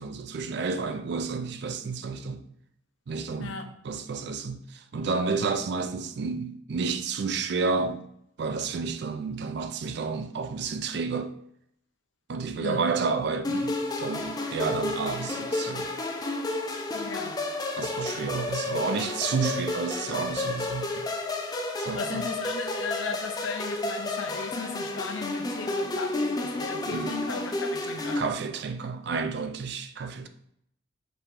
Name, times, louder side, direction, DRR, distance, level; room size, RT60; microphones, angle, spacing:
voice 1, 0.0-2.4 3.1-3.5 3.8-8.1 8.4-11.3 12.3-15.9 17.8-21.1 21.8-22.3 26.9-27.2 28.2-30.3, right 4 dB, 60° right, 0.4 m, -30 dB
sound 1, 13.4-28.2, left 2 dB, 20° left, 0.4 m, -31 dB
voice 2, 16.9-17.4 21.9-28.2, left 5 dB, 85° left, 0.6 m, -36 dB
5.3 x 2.9 x 3.0 m
head